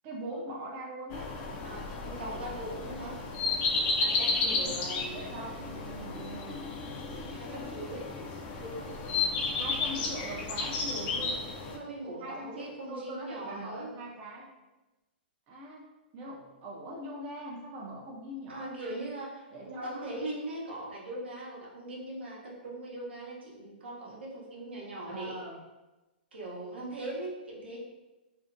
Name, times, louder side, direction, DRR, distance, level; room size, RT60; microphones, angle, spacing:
voice 1, 0.0-1.3 4.4-4.8 5.1-6.6 9.6-11.4 12.2-14.5 15.5-15.9 16.1-19.1 19.5-20.2 25.1-25.6, right 1 dB, 35° right, -2 dB, 0.4 m, -41 dB
sound 1, 1.1-11.8, left 3 dB, 35° left, 0.4 m, -33 dB
voice 2, 1.6-3.2 4.0-5.3 7.0-8.1 8.6-8.9 11.7-13.9 18.5-25.4 26.3-27.8, right 1 dB, 80° right, -4 dB, 0.7 m, -40 dB
2.5 x 2.0 x 2.5 m, 1.1 s
hypercardioid pair, 130°, 6 cm